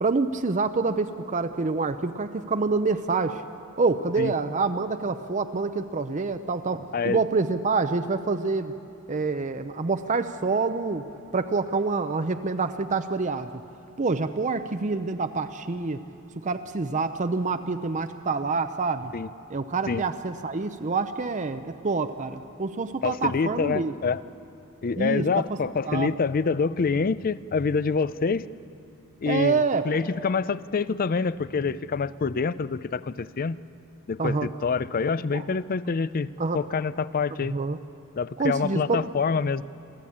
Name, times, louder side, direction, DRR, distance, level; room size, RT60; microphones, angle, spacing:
voice 1, 0.0-3.4 3.8-8.7 9.1-11.0 11.3-13.5 14.0-16.0 16.4-19.1 19.5-23.9 25.0-25.3 25.9-26.1 29.3-29.8 34.2-34.5 35.3-35.4 36.4-36.6 37.4-37.8 38.4-39.1, right 4 dB, 35° right, 9 dB, 0.6 m, -27 dB
voice 2, 23.0-24.2 24.8-28.5 29.2-33.6 34.1-36.3 36.5-37.5 38.2-39.6, left 5 dB, 40° left, 17 dB, 0.4 m, -26 dB
27.5 x 15.0 x 8.6 m, 2.6 s
head